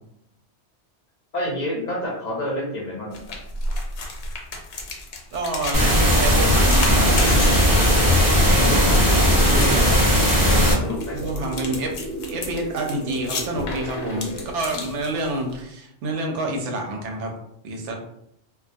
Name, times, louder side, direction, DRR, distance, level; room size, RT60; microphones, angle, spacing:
voice 1, 1.3-3.2 8.6-9.9 10.8-11.2, left 1 dB, 50° left, -4 dB, 0.6 m, -28 dB
sound 1, 3.1-15.6, left 2 dB, 75° left, 0.8 m, -33 dB
voice 2, 5.3-7.8 11.1-12.0 12.3-17.3 17.6-17.9, right 2 dB, 85° right, 2 dB, 0.9 m, -28 dB
sound 2, 5.7-10.7, equal, 20° right, 0.6 m, -17 dB
sound 3, 6.9-14.4, right 2 dB, 60° right, 0.8 m, -34 dB
2.3 x 2.1 x 2.5 m, 0.76 s
omnidirectional pair, 1.2 m